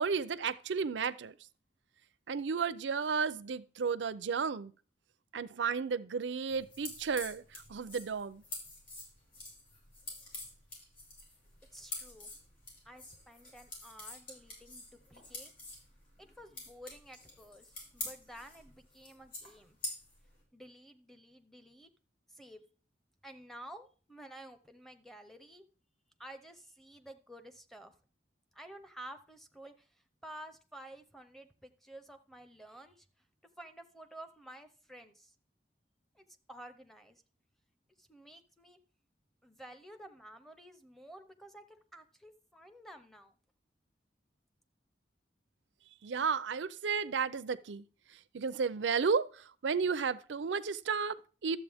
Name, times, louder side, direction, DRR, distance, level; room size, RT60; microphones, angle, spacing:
voice 1, 0.0-1.3 2.3-4.7 5.3-8.4 46.0-47.8 48.3-51.6, right 5 dB, 85° right, 0.5 m, -33 dB
sound 1, 6.5-20.3, left 2 dB, 50° left, 4.6 m, -47 dB
voice 2, 11.7-12.3 12.8-15.5 16.2-19.8 20.5-21.9 22.3-22.6 23.2-25.7 26.2-27.9 28.5-33.1 33.6-35.3 36.1-37.2 38.0-38.8 39.4-43.3, right 1 dB, ahead, 0.7 m, -52 dB
12.0 x 7.6 x 3.5 m
head